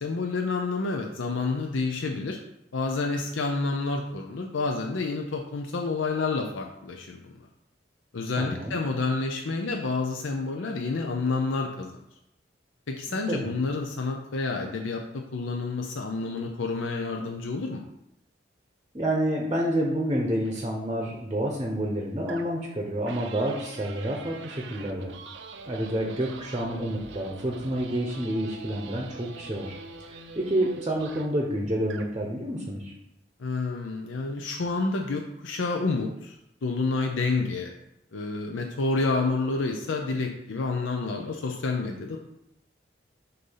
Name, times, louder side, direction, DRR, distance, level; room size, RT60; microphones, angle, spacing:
voice 1, 0.0-2.4 2.7-7.3 8.1-12.0 12.9-17.8 33.4-36.4 36.6-37.7 38.1-42.2, left 3 dB, 85° left, 2 dB, 0.6 m, -29 dB
voice 2, 8.4-8.8 13.1-13.5 18.9-25.1 25.7-29.8 30.0-32.9, right 1 dB, 25° right, -1 dB, 0.7 m, -29 dB
sound 1, 20.4-20.7 22.3-22.7 23.1-31.4 31.8-32.2, right 4 dB, 75° right, 0.5 m, -44 dB
6.6 x 2.7 x 5.6 m, 0.81 s
head